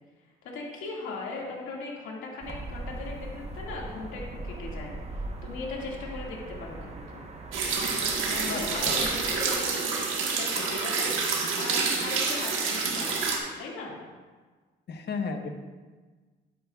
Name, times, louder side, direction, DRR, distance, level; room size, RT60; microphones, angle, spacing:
voice 1, 0.4-7.2 8.3-14.0, left 3 dB, 85° left, -2 dB, 2.1 m, -39 dB
sound 1, 2.4-9.5, right 2 dB, 30° right, 1.0 m, -40 dB
sound 2, 7.5-13.4, right 4 dB, 80° right, 1.4 m, -28 dB
voice 2, 8.5-9.0 14.9-15.5, left 4 dB, 60° left, 4 dB, 1.1 m, -33 dB
12.0 x 8.4 x 2.4 m, 1.4 s
cardioid pair, 90°, 20 cm